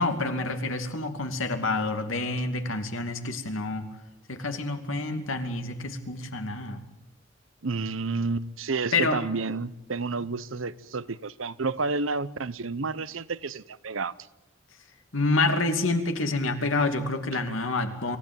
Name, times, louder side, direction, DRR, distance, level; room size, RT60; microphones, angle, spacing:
voice 1, 0.0-3.9 4.3-6.8 8.9-9.2 15.1-18.2, left 2 dB, 85° left, 2.8 m, -28 dB
voice 2, 7.6-14.1, right 4 dB, 85° right, 0.9 m, -30 dB
26.5 x 16.0 x 9.1 m
head